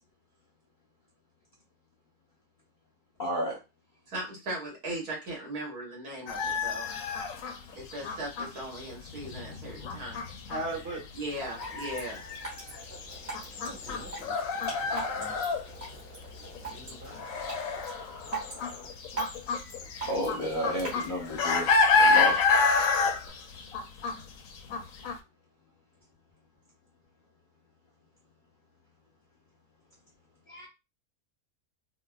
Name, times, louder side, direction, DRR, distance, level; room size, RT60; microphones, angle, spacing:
voice 1, 3.2-3.6 17.0-17.1 19.2-19.3 20.1-21.7 22.0-22.4 30.5-30.7, equal, 40° left, 0.8 m, -32 dB
voice 2, 4.1-6.9 7.7-10.2 11.1-12.2, right 1 dB, 75° right, 1.7 m, -38 dB
sound 1, 6.3-16.0 16.2-25.2, left 4 dB, 70° left, 0.9 m, -29 dB
voice 3, 10.5-11.0 13.6-14.4 14.6-15.4 16.6-17.3, right 2 dB, 10° right, 0.9 m, -40 dB
Drip, 11.3-23.3, right 3 dB, 45° right, 1.5 m, -43 dB
3.8 x 2.1 x 2.2 m
omnidirectional pair, 1.6 m